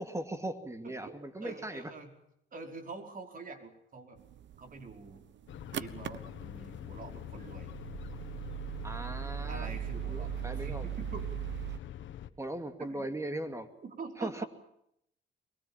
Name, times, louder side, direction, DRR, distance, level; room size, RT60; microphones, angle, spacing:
voice 1, 0.0-1.9 8.8-9.7 10.1-10.8 12.4-13.7 14.2-14.4, right 1 dB, 15° right, 8 dB, 2.5 m, -38 dB
voice 2, 0.8-2.1 2.5-4.2 4.6-5.2 5.7-7.7 9.5-11.3 12.8-13.2 13.8-14.5, right 4 dB, 45° right, 4 dB, 5.2 m, -45 dB
sound 1, 4.2-11.8, right 12 dB, 65° right, 1.1 m, -40 dB
sound 2, 5.5-12.3, left 11 dB, 75° left, 1.4 m, -45 dB
24.0 x 22.5 x 7.3 m, 0.76 s
cardioid pair, 90°, 20 cm